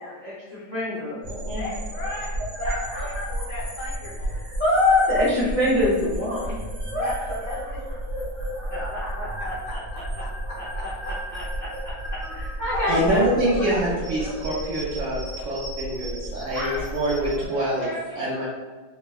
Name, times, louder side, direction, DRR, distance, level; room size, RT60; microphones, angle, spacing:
voice 1, 0.0-1.6 2.6-3.3 4.4-6.6 6.9-7.1 8.3-9.8 10.6-11.7 12.3-13.9 15.3-15.4 16.5-17.4 17.8-18.3, left 1 dB, 50° left, -10 dB, 0.5 m, -27 dB
sound 1, 1.2-17.5, right 1 dB, 35° right, 0.9 m, -33 dB
voice 2, 1.6-4.4 6.4-6.6 7.0-7.8 9.4-11.1 11.8-11.9 12.7-13.3 13.7-13.8 14.1-14.3, left 1 dB, 80° left, -5 dB, 1.4 m, -37 dB
voice 3, 12.9-15.2 15.5-17.9 18.2-18.4, right 1 dB, 65° right, -7 dB, 0.8 m, -25 dB
3.4 x 2.0 x 2.2 m, 1.4 s
omnidirectional pair, 1.8 m